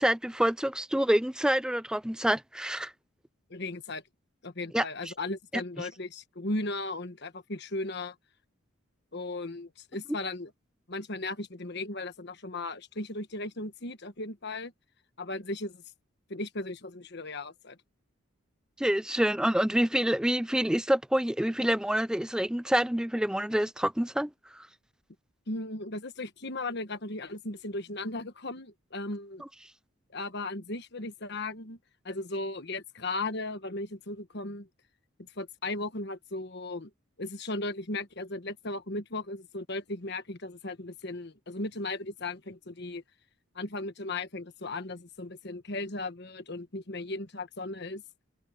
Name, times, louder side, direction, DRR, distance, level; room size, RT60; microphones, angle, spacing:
voice 1, 0.0-2.9 4.7-4.8 5.8-5.9 18.8-24.7, equal, 5° right, 0.4 m, -27 dB
voice 2, 3.5-4.0 4.4-8.1 9.1-10.5 10.9-14.7 15.2-15.8 16.3-17.8 25.5-29.4 30.1-31.8 32.0-34.7 35.4-36.9 37.2-43.0 43.5-48.0, left 2 dB, 55° left, 1.4 m, -36 dB
head